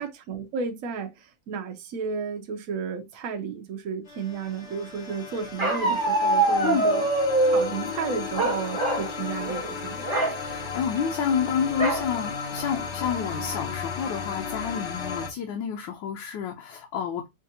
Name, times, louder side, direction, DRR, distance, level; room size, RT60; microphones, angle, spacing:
voice 1, 0.0-7.0 7.4-10.1, right 5 dB, 70° right, 0.8 m, -33 dB
sound 1, 4.1-15.3, left 5 dB, 60° left, 0.7 m, -34 dB
Bark, 5.6-7.7 8.3-9.1 9.4-9.6 10.0-10.4 11.8-12.1 12.6-12.7 13.0-13.5, right 2 dB, 15° right, 0.7 m, -24 dB
voice 2, 10.3-17.3, left 7 dB, 80° left, 1.4 m, -29 dB
5.2 x 2.4 x 2.7 m
omnidirectional pair, 2.0 m